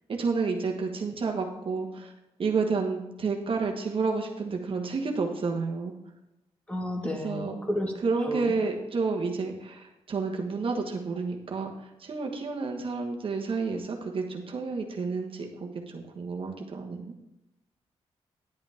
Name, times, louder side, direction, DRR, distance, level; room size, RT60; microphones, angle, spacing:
voice 1, 0.1-2.1 2.4-5.9 7.2-7.6 8.0-17.1, right 4 dB, 55° right, 2 dB, 1.4 m, -30 dB
voice 2, 6.7-7.9 8.2-8.5, left 1 dB, 10° left, 2 dB, 1.6 m, -31 dB
10.5 x 8.2 x 3.6 m, 0.94 s
cardioid pair, 85°, 11 cm